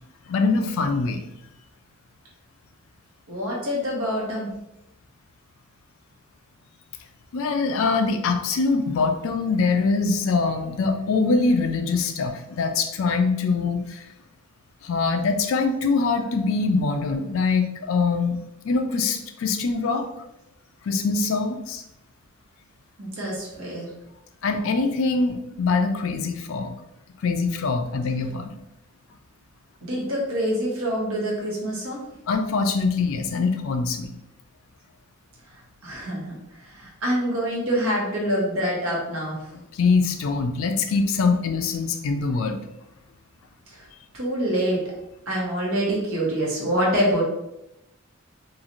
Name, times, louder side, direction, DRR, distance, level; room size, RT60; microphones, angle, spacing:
voice 1, 0.3-1.2 7.3-14.0 14.8-18.4 18.6-20.1 20.9-21.8 24.4-26.7 27.2-28.5 32.3-34.2 39.7-42.6, left 4 dB, 65° left, 6 dB, 0.4 m, -23 dB
voice 2, 3.3-4.5 23.0-23.9 29.8-32.0 35.8-39.4 43.7-43.9 44.1-44.8 45.3-47.2, equal, 70° right, -4 dB, 1.1 m, -26 dB
3.0 x 2.4 x 2.5 m, 0.87 s
head